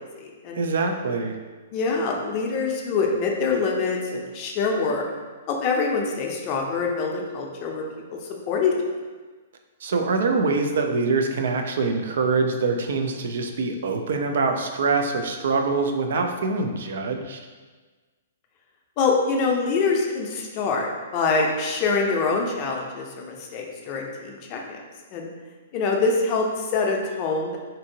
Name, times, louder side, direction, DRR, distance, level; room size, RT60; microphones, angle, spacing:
voice 1, 0.0-0.6 1.7-5.0 5.5-7.8 8.5-8.7 19.0-24.8 25.1-25.3 25.7-27.6, left 4 dB, 35° left, 1 dB, 0.4 m, -25 dB
voice 2, 0.6-1.4 9.8-17.5, right 4 dB, 70° right, 4 dB, 0.3 m, -24 dB
2.7 x 2.5 x 2.7 m, 1.4 s
hypercardioid pair, 145°, 0 cm